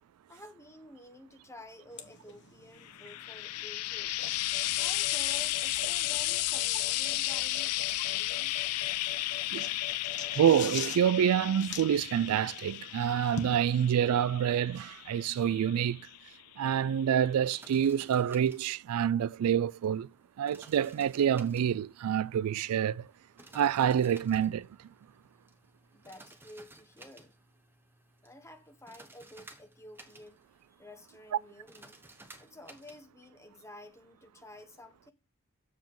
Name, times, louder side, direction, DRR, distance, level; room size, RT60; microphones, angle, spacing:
voice 1, 0.3-4.2 4.8-8.7 25.9-27.4 28.2-30.4 30.8-32.0 32.4-35.1, left 1 dB, 10° left, 1.1 m, -51 dB
sound 1, 1.9-13.5, left 5 dB, 50° left, 1.2 m, -45 dB
Frying (food), 2.9-16.3 17.2-17.3, left 16 dB, 90° left, 0.4 m, -34 dB
voice 2, 10.3-16.1 16.6-20.1 20.4-23.1 23.5-24.7, right 9 dB, 75° right, 0.3 m, -27 dB
sound 2, 17.2-33.0, right 2 dB, 10° right, 1.0 m, -56 dB
7.3 x 7.3 x 3.8 m
head